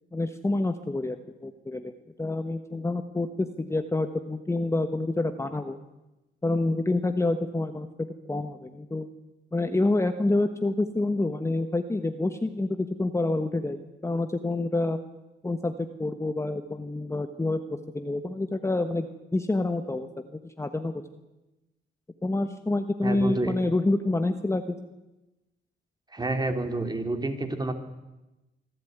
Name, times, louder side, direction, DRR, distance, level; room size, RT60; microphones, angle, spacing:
voice 1, 0.1-1.9 2.2-5.8 6.4-9.1 9.5-15.0 15.4-19.1 19.3-20.9 22.2-24.8, left 2 dB, 15° left, 8 dB, 1.2 m, -28 dB
voice 2, 23.0-23.5 26.1-27.7, right 2 dB, 20° right, 6 dB, 3.0 m, -29 dB
25.0 x 12.5 x 9.4 m, 1.0 s
cardioid pair, 90°, 20 cm